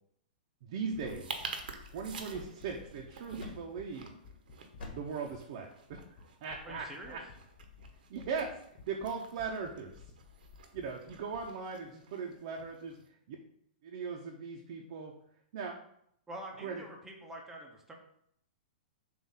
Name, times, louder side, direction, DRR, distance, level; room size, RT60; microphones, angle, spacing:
voice 1, 0.6-1.3 1.9-4.1 4.9-7.2 8.1-8.6 8.9-9.9 10.7-13.0 13.3-13.4 13.8-15.1 15.5-15.8 16.6-16.8, right 5 dB, 40° right, 0 dB, 0.7 m, -39 dB
sound 1, 0.9-5.6 5.9-6.2 6.5-9.1 9.4-11.4, left 5 dB, 30° left, 0.7 m, -54 dB
sound 2, 0.9-13.1, right 5 dB, 70° right, 1.0 m, -49 dB
sound 3, 1.0-3.0 3.4-3.9 4.8-5.2, left 3 dB, 80° left, 1.8 m, -49 dB
voice 2, 6.6-7.2 16.3-17.9, right 1 dB, 5° right, 0 dB, 0.7 m, -46 dB
7.3 x 2.6 x 5.6 m, 0.70 s
hypercardioid pair, 175°, 5 cm